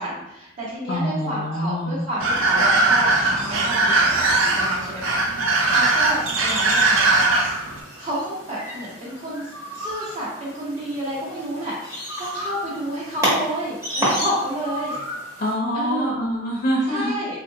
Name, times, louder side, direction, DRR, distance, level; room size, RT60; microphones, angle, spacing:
voice 1, 0.0-7.5 8.0-14.9 15.7-16.1 16.9-17.4, right 1 dB, 35° right, -11 dB, 1.0 m, -30 dB
voice 2, 0.9-2.0 15.4-17.1, equal, 40° left, -4 dB, 0.5 m, -25 dB
sound 1, 2.2-7.8, right 2 dB, 85° right, 0.5 m, -20 dB
sound 2, 3.9-15.5, equal, 15° right, 1.0 m, -32 dB
3.7 x 2.5 x 2.7 m, 0.88 s
head